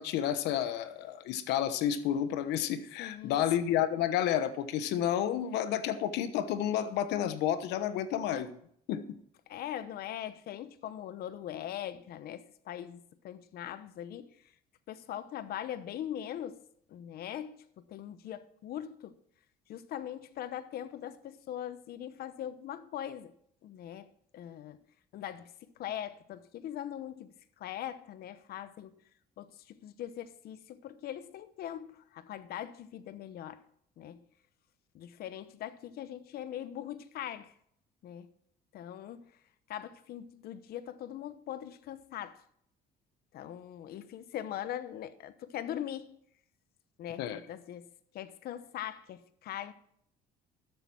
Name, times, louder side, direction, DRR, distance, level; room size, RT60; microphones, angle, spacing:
voice 1, 0.0-8.6 8.9-9.2 47.2-47.4, left 10 dB, 85° left, 1.1 m, -30 dB
voice 2, 3.0-3.5 9.5-14.3 14.9-16.6 16.9-19.1 19.7-23.3 23.6-24.1 24.3-24.8 25.1-27.3 27.6-28.9 29.4-33.6 34.0-34.2 34.9-37.5 38.0-38.3 38.7-39.2 39.7-42.4 43.3-46.2 47.0-47.9 48.1-49.7, left 11 dB, 65° left, 0.9 m, -41 dB
12.5 x 8.0 x 6.1 m
cardioid pair, 110°, 17 cm